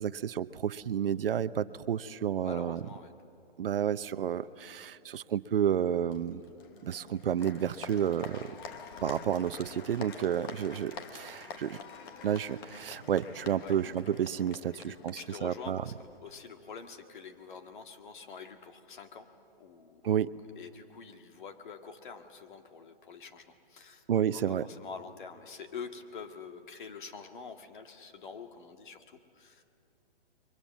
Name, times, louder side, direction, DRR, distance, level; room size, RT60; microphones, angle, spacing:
voice 1, 0.0-2.8 3.6-6.4 6.8-8.5 9.0-11.8 12.2-15.8 20.0-20.4 24.1-24.7, right 9 dB, 65° right, 14 dB, 0.8 m, -31 dB
voice 2, 2.4-3.1 13.6-13.8 14.8-19.3 19.6-20.2 20.6-24.0 24.3-29.6, left 5 dB, 55° left, 6 dB, 1.9 m, -46 dB
Applause, 6.1-16.2, left 5 dB, 25° left, 1.0 m, -47 dB
29.0 x 23.5 x 7.3 m, 2.8 s
hypercardioid pair, 165°, 30 cm